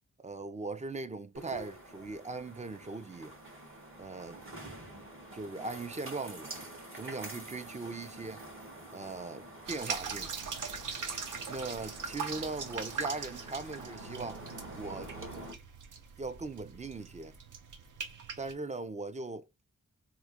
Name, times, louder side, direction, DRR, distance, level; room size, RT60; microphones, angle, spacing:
voice 1, 0.2-3.3 4.0-4.4 5.3-6.7 6.9-8.4 8.9-10.3 11.5-14.4 14.8-15.1 16.2-17.4 18.4-19.5, right 3 dB, 20° right, 0.4 m, -39 dB
sound 1, 1.3-15.5, right 1 dB, 40° right, 1.5 m, -47 dB
sound 2, 9.7-18.5, right 5 dB, 70° right, 0.8 m, -41 dB
3.1 x 2.9 x 3.5 m
wide cardioid pair, 160°, 32 cm